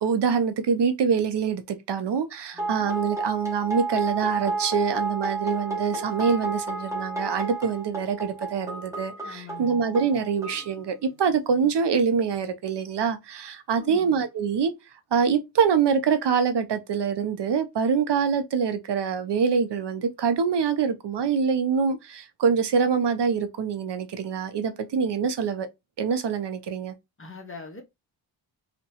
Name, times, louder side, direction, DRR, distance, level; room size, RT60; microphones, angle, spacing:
voice 1, 0.0-14.7 15.1-25.7 26.0-26.9, right 6 dB, 60° right, 0.5 m, -25 dB
voice 2, 2.5-2.9 9.2-9.8 13.8-14.2 27.2-27.8, left 3 dB, 30° left, 0.6 m, -42 dB
sound 1, 2.6-11.1, right 3 dB, 5° right, 0.9 m, -31 dB
2.7 x 2.1 x 2.7 m
wide cardioid pair, 105°, 47 cm